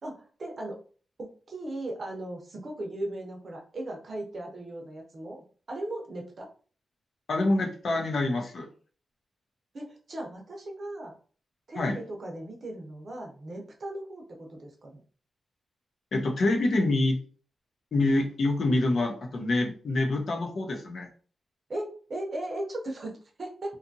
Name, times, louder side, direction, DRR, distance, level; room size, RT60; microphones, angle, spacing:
voice 1, 0.0-0.8 1.2-6.5 9.7-11.1 11.7-14.9 21.7-23.7, right 1 dB, 45° right, 1 dB, 0.7 m, -37 dB
voice 2, 7.3-8.7 11.8-12.0 16.1-17.2 17.9-21.1, left 2 dB, 55° left, 2 dB, 0.6 m, -26 dB
2.7 x 2.4 x 2.6 m, 0.41 s
wide cardioid pair, 120°, 0 cm